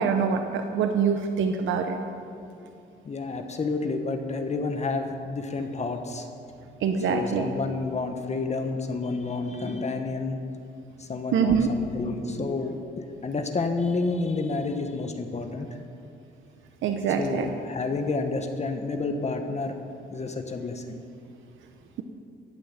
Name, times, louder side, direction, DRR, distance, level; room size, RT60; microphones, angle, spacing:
voice 1, 0.0-2.0 6.8-7.5 11.3-11.7 16.8-17.5, right 6 dB, 75° right, 5 dB, 1.0 m, -24 dB
voice 2, 3.0-6.3 7.1-10.4 11.0-15.7 17.1-19.8 20.1-21.0, left 3 dB, 35° left, 5 dB, 1.3 m, -30 dB
16.0 x 9.0 x 7.3 m, 2.5 s
cardioid pair, 90°, 20 cm